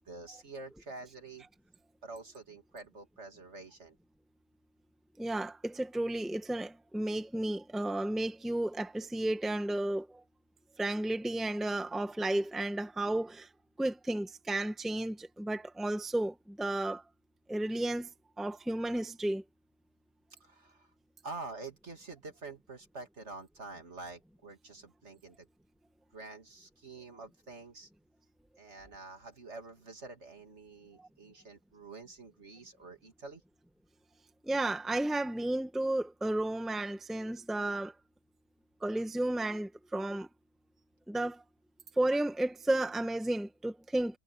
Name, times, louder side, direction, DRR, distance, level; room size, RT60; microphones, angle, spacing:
voice 1, 0.1-1.5 2.0-3.9 20.4-20.9 21.2-25.5 26.1-27.9 28.6-33.4, right 3 dB, 55° right, 3.0 m, -47 dB
voice 2, 5.2-10.2 10.8-13.5 13.8-17.0 17.5-18.1 18.4-19.4 34.4-37.9 38.8-40.3 41.1-41.4 42.0-44.2, right 1 dB, ahead, 1.5 m, -33 dB
omnidirectional pair, 1.4 m